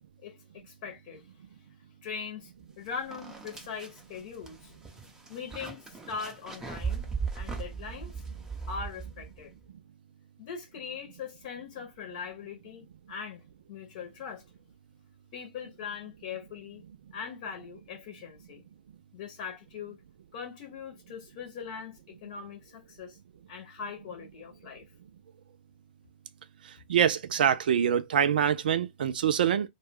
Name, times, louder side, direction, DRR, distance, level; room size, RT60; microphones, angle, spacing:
voice 1, 0.2-1.7 2.0-4.8 5.1-7.1 7.3-8.1 8.7-9.5 10.4-13.4 13.7-14.4 15.3-16.8 17.1-18.6 19.1-20.0 20.3-23.2 23.5-24.9, left 6 dB, 50° left, 0.8 m, -41 dB
sound 1, 2.6-2.7 3.1-9.5, right 5 dB, 10° right, 0.6 m, -38 dB
voice 2, 26.9-29.7, right 8 dB, 65° right, 0.5 m, -25 dB
2.3 x 2.3 x 3.3 m
hypercardioid pair, 120°, 5 cm